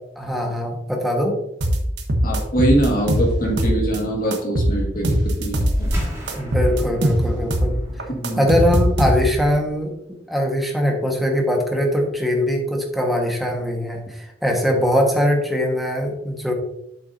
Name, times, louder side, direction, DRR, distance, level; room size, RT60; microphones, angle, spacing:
voice 1, 0.2-1.4 6.3-7.8 8.4-9.9 10.3-16.5, equal, ahead, 0 dB, 1.4 m, -21 dB
sound 1, 1.6-4.0 4.3-6.0 6.3-9.5, equal, 70° right, 1.2 m, -21 dB
voice 2, 2.2-5.9 8.2-8.4, right 1 dB, 50° left, -1 dB, 1.9 m, -22 dB
sound 2, 5.6-10.5, equal, 15° right, 2.1 m, -31 dB
8.4 x 7.1 x 2.7 m, 0.80 s
head